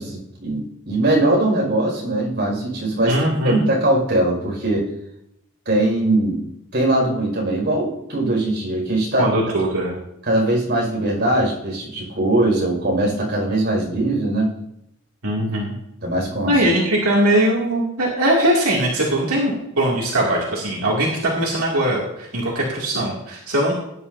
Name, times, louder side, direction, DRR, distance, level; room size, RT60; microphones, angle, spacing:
voice 1, 0.0-4.9 5.7-6.4 6.7-9.3 10.2-14.5 16.0-16.6, right 1 dB, 50° right, -2 dB, 5.4 m, -21 dB
voice 2, 3.1-3.6 9.2-10.0 15.2-15.7 16.5-23.7, right 1 dB, 85° right, -4 dB, 2.5 m, -20 dB
19.0 x 10.0 x 2.7 m, 0.82 s
head